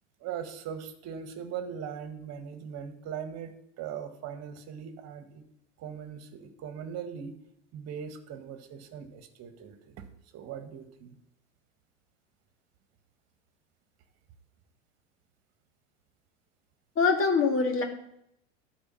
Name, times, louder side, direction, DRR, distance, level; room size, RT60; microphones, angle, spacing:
voice 1, 0.2-5.4 5.8-7.3 7.7-10.0 10.3-11.1, right 8 dB, 45° right, 8 dB, 1.7 m, -40 dB
voice 2, 17.0-17.8, left 4 dB, 35° left, 4 dB, 2.2 m, -24 dB
11.5 x 4.9 x 7.2 m, 0.75 s
hypercardioid pair, 85°, 37 cm